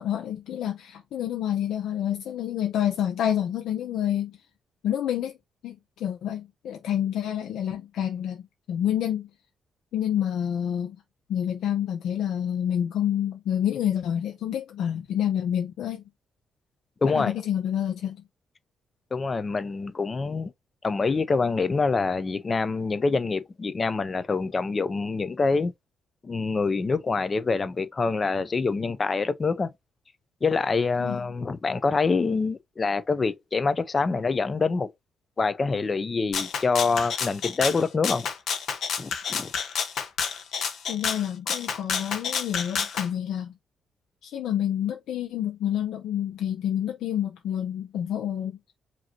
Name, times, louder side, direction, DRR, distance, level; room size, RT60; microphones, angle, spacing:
voice 1, 0.0-4.4 4.8-5.4 5.6-8.4 8.7-9.3 9.9-11.0 11.3-16.0 17.0-18.2 31.0-31.3 40.9-43.5 44.2-48.6, left 10 dB, 90° left, 0.6 m, -28 dB
voice 2, 17.0-17.3 19.1-20.5 20.8-25.7 26.2-29.7 30.4-34.9 35.4-38.3 39.0-39.5, left 4 dB, 25° left, 0.5 m, -26 dB
Rattle (instrument), 36.3-43.1, left 6 dB, 65° left, 0.9 m, -29 dB
5.1 x 2.7 x 2.8 m
cardioid pair, 165°, 0 cm